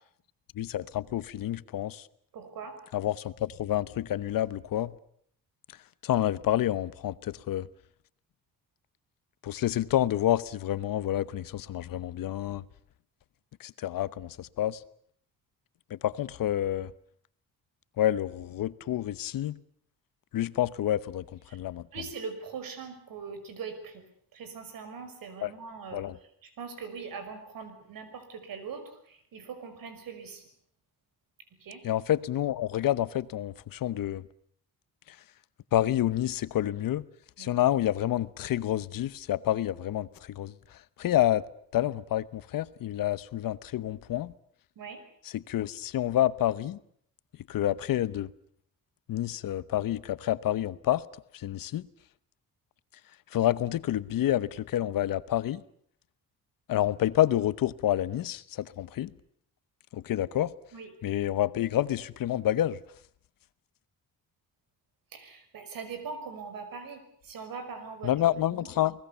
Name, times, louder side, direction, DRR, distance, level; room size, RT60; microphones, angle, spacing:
voice 1, 0.5-2.1 2.9-5.0 6.0-7.7 9.4-12.6 13.6-14.8 15.9-16.9 18.0-19.6 20.3-21.2 21.5-21.9 25.4-25.5 25.9-26.1 31.8-34.2 35.1-35.2 35.7-37.0 37.4-41.5 41.7-44.3 45.3-46.8 47.5-48.3 49.1-51.0 51.3-51.8 53.3-55.6 56.7-59.1 59.9-60.5 61.0-62.8 68.0-68.9, left 12 dB, 75° left, 1.0 m, -28 dB
voice 2, 2.3-2.8 21.5-21.6 21.9-24.0 24.3-26.0 26.4-30.5 31.6-31.9 37.4-37.5 44.8-45.0 60.7-60.9 65.1-68.2 68.6-68.7, right 5 dB, 75° right, 5.6 m, -41 dB
29.0 x 20.0 x 6.9 m
cardioid pair, 130°, 34 cm